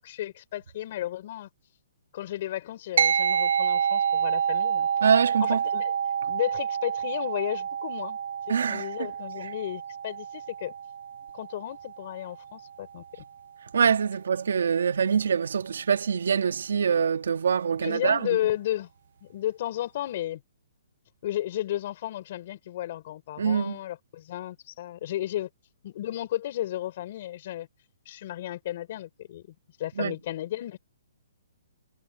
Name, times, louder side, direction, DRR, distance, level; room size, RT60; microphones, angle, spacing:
voice 1, 0.0-1.5 2.1-4.9 5.4-5.9 6.3-8.2 8.7-10.7 11.3-13.0 17.8-18.9 19.2-20.4 21.2-25.5 25.8-27.7 28.1-29.4 29.8-30.8, left 13 dB, 35° left, 5.3 m, -33 dB
sound 1, 3.0-12.7, right 8 dB, 50° right, 0.7 m, -28 dB
voice 2, 5.0-5.6 8.5-8.9 13.7-18.4 23.4-23.8 30.0-30.1, right 6 dB, 65° right, 1.9 m, -24 dB
hypercardioid pair, 175°, 0 cm